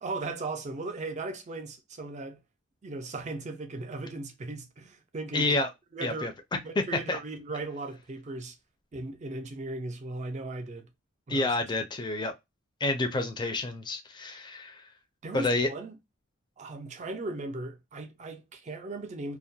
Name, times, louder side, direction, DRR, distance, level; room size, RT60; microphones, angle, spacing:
voice 1, 0.0-2.4 2.8-5.6 5.9-6.3 6.6-8.6 8.9-10.9 11.3-11.6 15.2-15.9 16.6-19.4, right 2 dB, 35° right, 0.5 m, -37 dB
voice 2, 5.3-5.7 6.0-6.3 7.1-7.2 11.3-12.3 12.8-14.8 15.3-15.7, left 2 dB, 20° left, 0.4 m, -29 dB
2.3 x 2.1 x 2.6 m
head